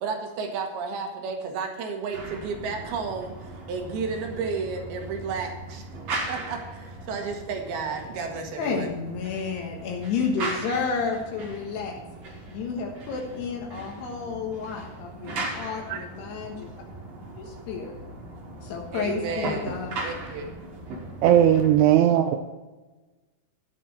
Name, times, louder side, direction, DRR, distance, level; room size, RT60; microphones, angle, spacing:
voice 1, 0.0-5.9 6.3-8.9 18.9-19.6 20.0-20.5, right 5 dB, 70° right, 3 dB, 3.5 m, -32 dB
sound 1, 2.1-21.8, right 2 dB, 45° right, 2.8 m, -38 dB
voice 2, 8.6-12.0 12.5-16.7 17.4-18.0 18.6-20.1, left 5 dB, 75° left, 0 dB, 3.4 m, -31 dB
voice 3, 21.2-22.3, right 11 dB, 85° right, 6 dB, 2.8 m, -18 dB
12.0 x 9.4 x 4.3 m, 1.2 s
omnidirectional pair, 4.8 m